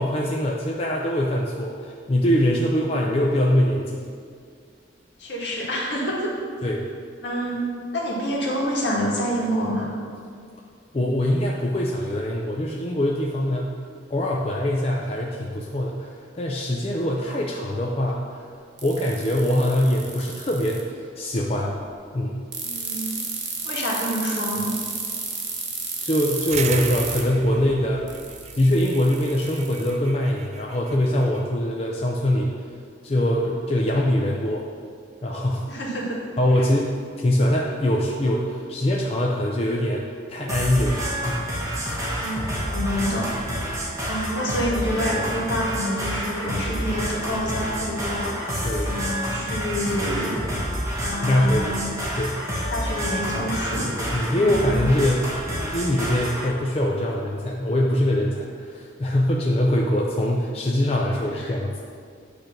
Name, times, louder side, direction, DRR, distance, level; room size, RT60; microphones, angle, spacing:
voice 1, 0.0-4.1 6.6-6.9 10.9-13.7 14.1-16.1 16.3-18.4 18.8-21.8 22.1-22.5 26.0-28.1 28.5-32.6 33.0-34.7 35.2-35.7 36.4-41.5 48.6-48.9 51.2-51.7 52.2-52.4 54.0-61.8, left 1 dB, 35° left, -2 dB, 0.5 m, -23 dB
voice 2, 5.2-6.3 7.2-7.7 7.9-9.9 22.6-23.2 23.6-24.7 35.7-36.2 36.5-36.6 42.1-42.4 42.7-43.3 44.1-48.4 48.8-50.3 51.0-51.8 52.7-53.9 54.3-54.7 61.3-61.5, equal, 70° left, -4 dB, 1.8 m, -27 dB
sound 1, 18.8-20.8 22.5-27.2 28.1-29.9, right 6 dB, 70° right, 1.1 m, -32 dB
sound 2, 26.5-31.4, right 6 dB, 35° right, 0.4 m, -37 dB
sound 3, 40.5-56.5, equal, 15° right, 1.3 m, -28 dB
9.0 x 3.3 x 5.8 m, 2.2 s
head